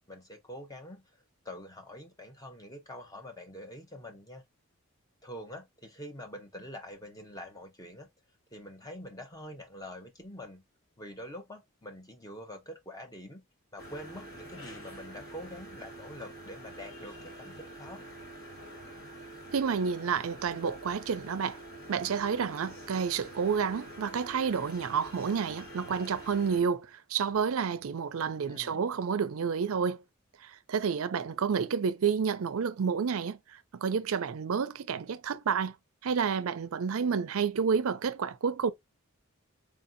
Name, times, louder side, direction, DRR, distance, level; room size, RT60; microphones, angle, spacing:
voice 1, 0.1-1.0 1.4-4.4 5.2-8.1 8.5-10.6 11.0-13.4 13.7-18.0 28.5-28.8, left 1 dB, 15° left, 0.8 m, -45 dB
sound 1, 13.8-26.6, right 1 dB, 55° left, 2.0 m, -46 dB
voice 2, 19.5-21.6 21.9-30.0 30.4-35.7 36.0-38.7, right 6 dB, 70° right, 0.4 m, -30 dB
4.7 x 2.7 x 2.5 m
head